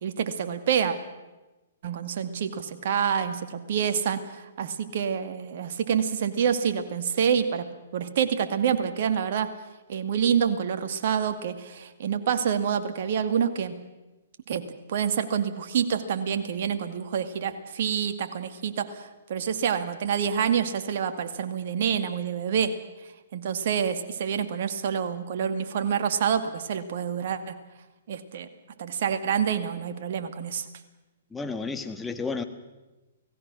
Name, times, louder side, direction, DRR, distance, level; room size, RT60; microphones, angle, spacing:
voice 1, 0.0-1.0 1.8-7.7 7.9-9.5 9.9-13.8 14.5-22.7 23.3-27.6 28.1-28.5 28.8-30.7, right 7 dB, 55° right, 8 dB, 2.2 m, -27 dB
voice 2, 31.3-32.4, left 4 dB, 10° left, 7 dB, 1.7 m, -32 dB
29.0 x 18.0 x 6.3 m, 1.1 s
figure-of-eight pair, 120°, 0 cm